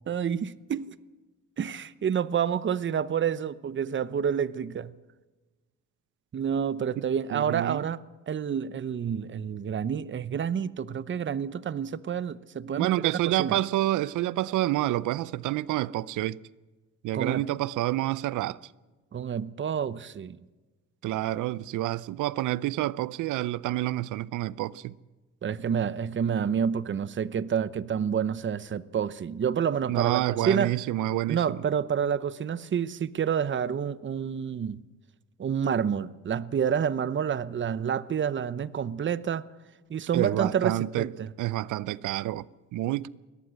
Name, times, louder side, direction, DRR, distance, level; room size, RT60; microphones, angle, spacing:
voice 1, 0.1-0.9 1.6-4.9 6.3-13.1 13.4-13.6 17.1-17.4 19.1-20.4 25.4-30.8 31.3-34.8 35.4-39.5 39.9-41.3, right 7 dB, 40° right, 0.8 m, -29 dB
voice 2, 7.3-7.9 12.8-16.4 17.0-18.6 21.0-25.0 29.9-31.4 40.1-41.1 41.4-42.4 42.7-43.1, right 15 dB, 80° right, 0.6 m, -28 dB
21.5 x 17.5 x 7.7 m
cardioid pair, 90°, 30 cm